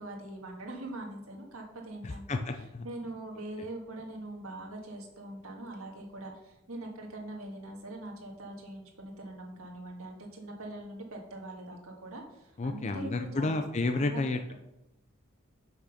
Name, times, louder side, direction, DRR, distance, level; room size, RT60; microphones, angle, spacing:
voice 1, 0.0-2.4 2.8-13.6 13.9-14.2, right 1 dB, 90° right, 1 dB, 1.7 m, -42 dB
voice 2, 2.0-2.9 12.6-14.4, left 2 dB, 35° left, 6 dB, 0.4 m, -31 dB
6.1 x 6.0 x 5.8 m, 0.89 s
head